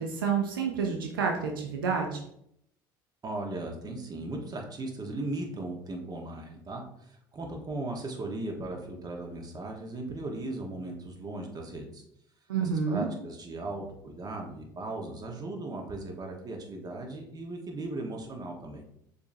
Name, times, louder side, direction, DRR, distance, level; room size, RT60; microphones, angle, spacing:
voice 1, 0.0-2.2 12.5-13.1, right 6 dB, 90° right, 2 dB, 0.6 m, -29 dB
voice 2, 3.2-12.0 12.6-18.8, right 2 dB, 35° right, 2 dB, 1.2 m, -37 dB
6.7 x 2.7 x 2.7 m, 0.73 s
hypercardioid pair, 70°, 11 cm